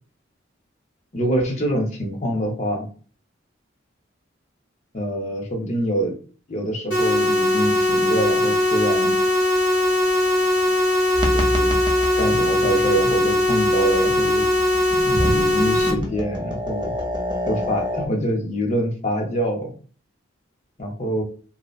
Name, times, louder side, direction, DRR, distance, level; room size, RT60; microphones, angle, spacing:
voice 1, 1.1-2.9 4.9-6.2 6.5-9.2 11.3-11.8 12.2-14.5 15.1-16.9 17.5-19.7 20.8-21.2, equal, 35° left, 1 dB, 0.6 m, -25 dB
sound 1, 6.9-15.9, left 1 dB, 90° left, 1.0 m, -20 dB
sound 2, 11.1-18.1, equal, 25° right, 0.4 m, -28 dB
2.6 x 2.0 x 2.4 m, 0.40 s
head